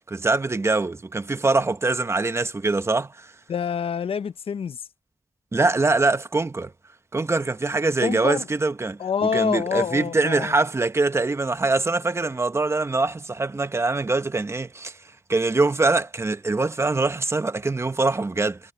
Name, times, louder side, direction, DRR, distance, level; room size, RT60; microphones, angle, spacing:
voice 1, 0.1-3.3 5.5-6.7 7.1-15.0 15.3-18.6, right 3 dB, 25° right, 0.9 m, -23 dB
voice 2, 3.5-4.8 8.0-8.4 9.0-10.5, left 7 dB, 75° left, 0.6 m, -26 dB
wide cardioid pair, 105°, 10 cm